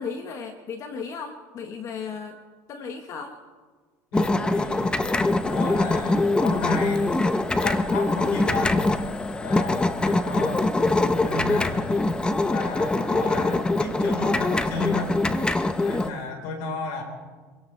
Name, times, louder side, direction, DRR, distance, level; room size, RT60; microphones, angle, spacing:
voice 1, 0.0-2.4 2.7-3.4, left 5 dB, 45° left, 6 dB, 1.3 m, -35 dB
voice 2, 4.1-5.0 5.4-7.1 7.6-8.9 9.4-10.7 11.2-12.1 12.5-15.2 15.8-17.0, left 4 dB, 80° left, 2 dB, 4.3 m, -33 dB
sound 1, 4.1-16.1, left 2 dB, 10° left, 0.8 m, -23 dB
24.5 x 17.0 x 3.3 m, 1.4 s
supercardioid pair, 115°, 7 cm